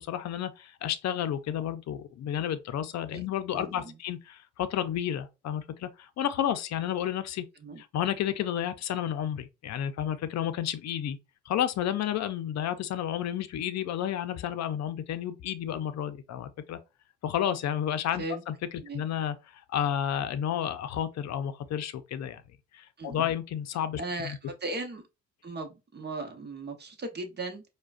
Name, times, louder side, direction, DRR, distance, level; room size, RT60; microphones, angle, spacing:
voice 1, 0.0-7.4 7.8-11.2 11.5-16.8 17.2-18.5 18.9-22.4 22.7-24.4, left 10 dB, 60° left, 0.6 m, -31 dB
voice 2, 3.5-4.0 7.6-7.8 18.2-18.4 18.8-19.0 23.0-23.3 24.0-25.0 25.4-27.6, right 2 dB, 35° right, 0.9 m, -37 dB
4.8 x 2.3 x 2.4 m
cardioid pair, 90°, 30 cm